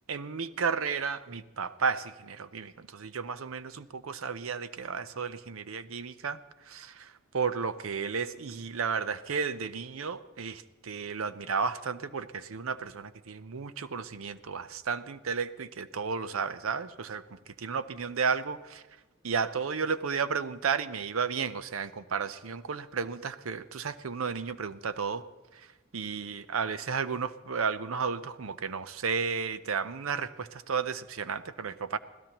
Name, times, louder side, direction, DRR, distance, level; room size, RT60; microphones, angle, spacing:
voice 1, 0.1-6.4 6.7-17.2 17.6-18.8 19.2-25.2 25.6-25.7 25.9-32.0, right 5 dB, 80° right, 13 dB, 0.6 m, -33 dB
25.5 x 16.5 x 3.0 m, 1.2 s
head